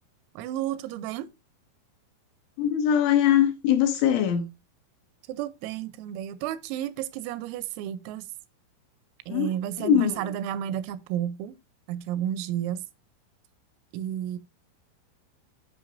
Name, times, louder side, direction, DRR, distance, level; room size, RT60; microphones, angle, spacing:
voice 1, 0.4-1.3 5.3-8.3 9.3-11.5 11.9-12.8 13.9-14.4, right 11 dB, 85° right, 3.4 m, -32 dB
voice 2, 2.6-4.5 9.3-9.5 9.8-10.2, left 9 dB, 75° left, 3.0 m, -22 dB
12.0 x 5.4 x 2.5 m
omnidirectional pair, 5.9 m